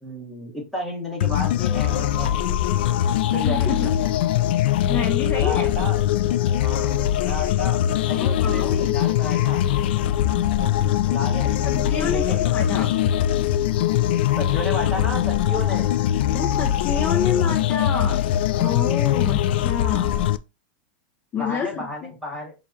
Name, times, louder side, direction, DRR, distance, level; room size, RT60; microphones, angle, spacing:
voice 1, 0.0-2.4 3.3-4.1 5.3-6.0 6.6-7.0 7.2-9.6 10.6-11.5 11.9-13.1 14.4-15.9 21.4-22.5, left 1 dB, ahead, -3 dB, 1.5 m, -32 dB
sound 1, 1.2-20.4, left 11 dB, 65° left, 0.3 m, -22 dB
voice 2, 3.4-3.9 4.9-5.7 8.2-8.9 11.6-12.9 16.3-18.2 18.6-20.1 21.3-22.1, left 6 dB, 25° left, 2 dB, 0.6 m, -28 dB
6.5 x 2.4 x 2.7 m, 0.25 s
supercardioid pair, 140°, 6 cm